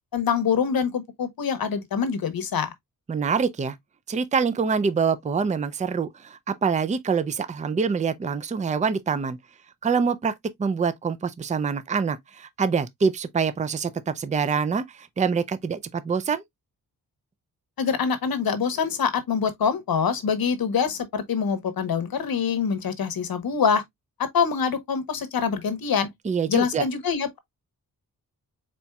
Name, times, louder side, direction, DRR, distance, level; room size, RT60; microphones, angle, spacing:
voice 1, 0.1-2.7 17.8-23.8 24.2-26.1 26.5-27.4, left 6 dB, 70° left, 1.0 m, -25 dB
voice 2, 3.1-3.8 4.1-9.4 9.8-16.4 26.3-26.8, right 5 dB, 20° right, 0.4 m, -25 dB
4.3 x 4.1 x 2.2 m
wide cardioid pair, 130°, 38 cm